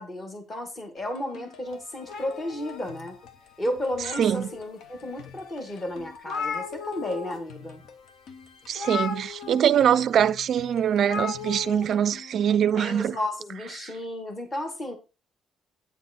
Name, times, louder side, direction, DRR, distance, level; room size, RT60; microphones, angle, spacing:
voice 1, 0.0-3.2 3.6-7.8 12.7-15.0, left 1 dB, 20° left, 2.0 m, -33 dB
sound 1, 1.0-13.3, left 6 dB, 80° left, 1.5 m, -50 dB
sound 2, 2.1-3.3 3.8-4.7 5.3-5.4 5.7-5.8 6.0-7.4 7.6-7.9 8.7-9.8 11.0-11.8, left 5 dB, 55° left, 1.2 m, -35 dB
voice 2, 4.2-4.5 8.7-13.2 13.8-13.9, right 9 dB, 50° right, 0.4 m, -23 dB
9.1 x 6.4 x 4.3 m
cardioid pair, 175°, 0 cm